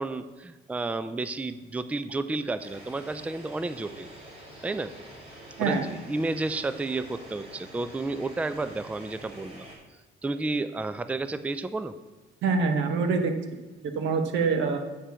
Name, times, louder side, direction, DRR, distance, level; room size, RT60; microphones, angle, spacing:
voice 1, 0.0-4.1 4.6-4.9 5.6-9.7 10.2-12.0, right 2 dB, 5° right, 13 dB, 0.4 m, -31 dB
sound 1, 2.6-9.8, right 1 dB, 35° right, 3.3 m, -47 dB
voice 2, 12.4-13.3 13.8-14.8, right 4 dB, 80° right, 6 dB, 1.1 m, -25 dB
8.9 x 4.8 x 6.8 m, 1.2 s
cardioid pair, 100°, 19 cm